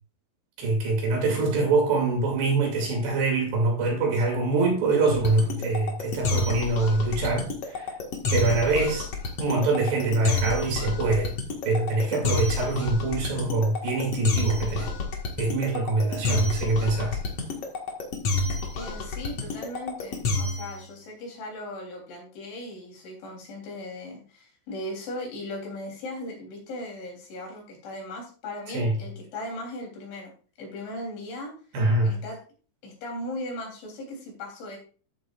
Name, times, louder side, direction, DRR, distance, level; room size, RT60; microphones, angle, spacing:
voice 1, 0.6-7.9 8.3-9.1 9.4-11.3 11.6-14.9 15.4-17.2 28.7-29.0 31.7-32.1, right 3 dB, 65° right, 4.7 m, -24 dB
sound 1, 5.1-20.8, left 3 dB, 60° left, 1.7 m, -28 dB
voice 2, 18.7-30.3 30.6-31.5 32.0-32.4 32.8-34.8, left 1 dB, 75° left, 5.9 m, -38 dB
13.0 x 8.3 x 2.5 m
omnidirectional pair, 5.4 m